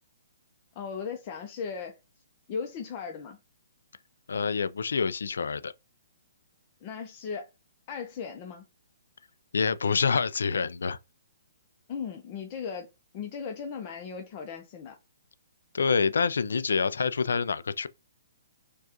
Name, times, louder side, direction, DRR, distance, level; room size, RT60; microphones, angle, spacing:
voice 1, 0.8-1.9 2.5-3.4 6.8-7.5 7.9-8.6 11.9-12.9 13.1-15.0, left 6 dB, 30° left, 0.6 m, -37 dB
voice 2, 4.3-5.7 9.5-11.0 15.7-17.9, left 5 dB, 85° left, 0.3 m, -27 dB
4.5 x 2.3 x 2.9 m
hypercardioid pair, 155°, 0 cm